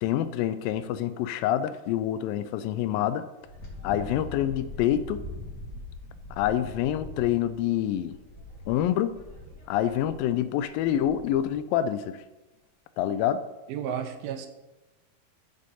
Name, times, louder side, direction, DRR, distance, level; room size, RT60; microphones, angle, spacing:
voice 1, 0.0-3.3 3.8-5.2 6.4-8.2 8.7-9.2 9.7-12.2 13.0-13.5, left 11 dB, 85° left, 11 dB, 2.0 m, -26 dB
Wind, 3.4-11.6, left 2 dB, 30° left, 2.2 m, -42 dB
voice 2, 13.7-14.5, right 8 dB, 75° right, 7 dB, 2.2 m, -32 dB
14.5 x 5.2 x 4.1 m, 1.1 s
omnidirectional pair, 4.6 m